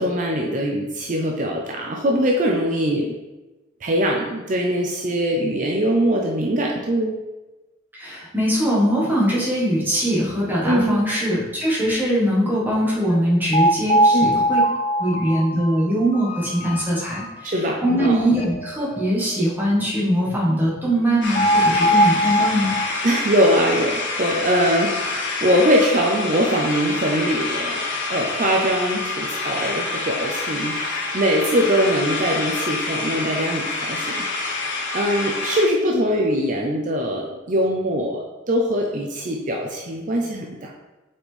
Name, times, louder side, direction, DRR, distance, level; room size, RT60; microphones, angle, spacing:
voice 1, 0.0-3.1 3.8-7.2 10.6-11.0 14.1-14.4 17.4-18.2 23.0-40.7, equal, 40° right, 0 dB, 0.6 m, -22 dB
voice 2, 7.9-14.6 15.0-22.8, equal, 10° right, -6 dB, 1.6 m, -21 dB
sound 1, 13.1-13.2 13.5-17.3 17.6-17.7 18.0-18.1 18.4-19.1 21.3-23.2, equal, 30° left, 0.4 m, -21 dB
sound 2, 21.2-35.7, left 3 dB, 85° left, 1.3 m, -27 dB
7.3 x 4.3 x 3.4 m, 1.1 s
head